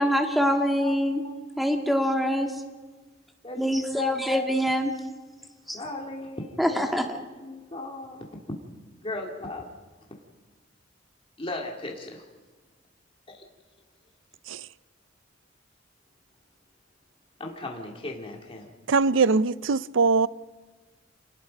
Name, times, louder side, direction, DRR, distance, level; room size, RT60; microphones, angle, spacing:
voice 1, 0.0-1.2 1.6-2.5 3.6-4.9 5.7-5.8 6.6-7.2, equal, ahead, 2.0 m, -24 dB
voice 2, 3.4-4.5 5.7-6.9 7.4-8.3 9.0-9.7 11.4-12.2 13.3-13.5 17.4-18.7, left 2 dB, 30° left, 2.4 m, -36 dB
voice 3, 18.9-20.3, right 4 dB, 75° right, 0.6 m, -22 dB
28.0 x 19.5 x 5.3 m
head